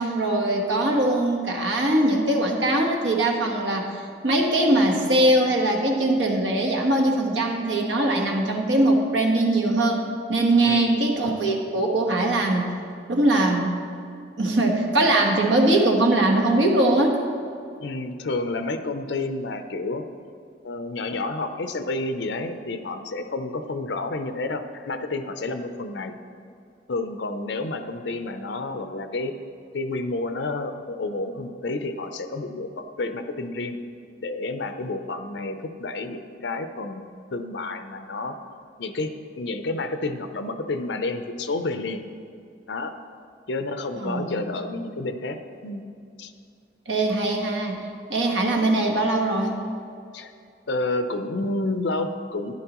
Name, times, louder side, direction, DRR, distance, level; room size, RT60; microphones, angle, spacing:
voice 1, 0.0-3.9 4.2-10.0 10.3-12.8 13.1-13.8 14.4-17.2 44.0-44.5 46.9-47.8 48.1-49.6, right 1 dB, 85° right, 1 dB, 1.3 m, -21 dB
voice 2, 10.6-11.1 17.8-20.0 20.6-26.1 26.9-29.3 29.7-33.8 34.2-38.4 38.8-42.0 42.7-42.9 43.5-45.4 45.6-45.8 46.2-46.3 50.1-50.3 50.7-52.5, left 2 dB, 75° left, 8 dB, 0.6 m, -30 dB
11.5 x 10.5 x 3.0 m, 2.4 s
head